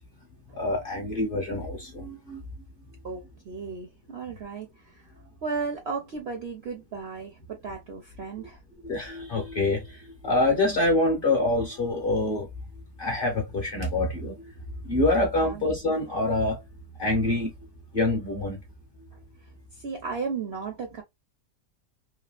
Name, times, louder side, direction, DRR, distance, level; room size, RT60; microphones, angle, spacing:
voice 1, 0.5-2.4 8.8-12.5 13.0-14.5 14.8-16.6 17.0-17.5 17.9-18.6, left 2 dB, 45° left, 0.8 m, -26 dB
voice 2, 3.0-5.0 5.4-8.6 15.4-15.6 19.7-21.0, right 5 dB, 60° right, 0.7 m, -35 dB
3.1 x 2.7 x 2.3 m
omnidirectional pair, 1.7 m